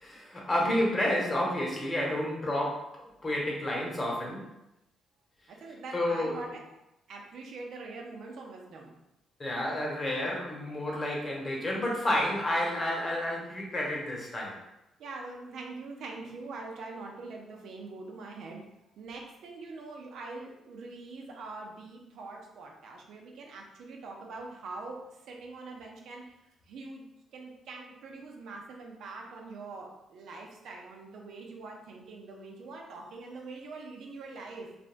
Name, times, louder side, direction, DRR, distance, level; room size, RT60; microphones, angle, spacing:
voice 1, 0.0-4.5 5.9-6.4 9.4-14.6, left 1 dB, 30° left, -2 dB, 0.9 m, -30 dB
voice 2, 5.5-6.6 7.1-8.9 15.0-18.6 19.0-25.0 25.3-26.2 26.7-27.1 27.3-34.7, right 3 dB, 75° right, 0 dB, 0.5 m, -43 dB
3.4 x 2.2 x 2.5 m, 0.88 s
cardioid pair, 90°, 0 cm